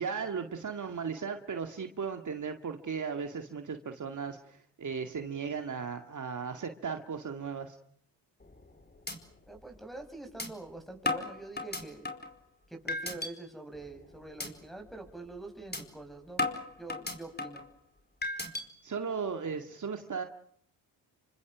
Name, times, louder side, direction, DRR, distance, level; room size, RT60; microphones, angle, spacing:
voice 1, 0.0-7.8 18.8-20.2, right 6 dB, 45° right, 5 dB, 2.2 m, -36 dB
sound 1, 8.4-8.7 9.1-9.2 9.6-9.7 10.4-10.5 11.1-12.3 12.9-13.3 13.7-14.0 14.4-14.5 14.9-15.1 15.7-15.8 16.4-17.7 18.2-18.6, left 2 dB, 25° left, 4.7 m, -34 dB
voice 2, 9.5-12.1 12.7-16.5 16.8-17.6, right 2 dB, ahead, 7 dB, 7.2 m, -45 dB
29.5 x 25.0 x 6.3 m, 0.65 s
supercardioid pair, 60°, 42 cm